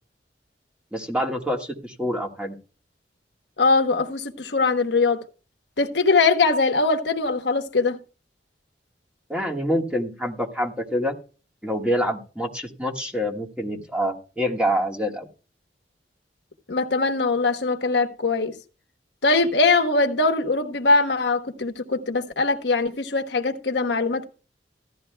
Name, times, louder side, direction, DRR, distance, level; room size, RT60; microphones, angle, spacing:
voice 1, 0.9-2.5 9.3-11.1 11.6-15.3, equal, 5° right, 1.6 m, -26 dB
voice 2, 3.6-5.2 5.8-8.0 16.7-18.5 19.2-24.3, left 3 dB, 75° left, 1.1 m, -21 dB
15.0 x 12.0 x 2.2 m
head